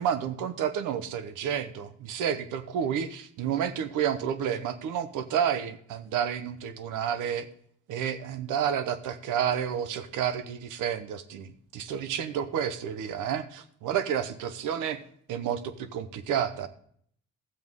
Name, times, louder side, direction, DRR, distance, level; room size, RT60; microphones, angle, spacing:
voice 1, 0.0-7.5 7.9-15.0 15.3-16.7, right 8 dB, 90° right, 11 dB, 1.0 m, -30 dB
13.0 x 7.8 x 3.7 m, 0.62 s
cardioid pair, 90°, 30 cm